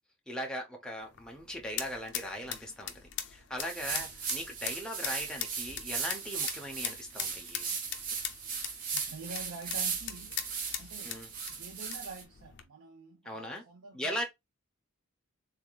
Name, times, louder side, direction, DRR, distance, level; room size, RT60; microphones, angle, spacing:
voice 1, 0.3-2.9 3.3-7.8 11.0-11.3 13.2-13.6 13.9-14.2, equal, 5° left, 0.8 m, -39 dB
sound 1, 1.0-12.6, left 10 dB, 55° left, 0.6 m, -42 dB
sound 2, 3.6-12.2, right 6 dB, 40° right, 0.8 m, -37 dB
voice 2, 8.9-10.4 10.8-11.2 11.5-14.2, right 3 dB, 90° right, 0.7 m, -47 dB
3.5 x 3.4 x 2.3 m
head